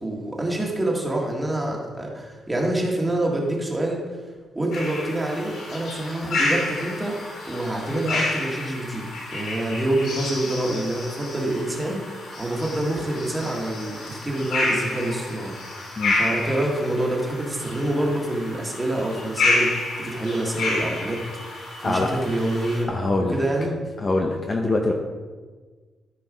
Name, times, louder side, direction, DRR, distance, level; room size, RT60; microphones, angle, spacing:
voice 1, 0.0-4.0 4.5-7.2 7.5-9.0 9.3-15.5 16.1-21.2 21.8-22.9 23.3-23.8, right 1 dB, 10° right, -1 dB, 1.6 m, -26 dB
sound 1, 4.7-22.8, left 2 dB, 80° left, 2.7 m, -29 dB
voice 2, 22.9-23.4 24.0-24.9, left 2 dB, 25° left, 2 dB, 0.7 m, -23 dB
13.5 x 4.6 x 5.0 m, 1.4 s
wide cardioid pair, 165°, 0 cm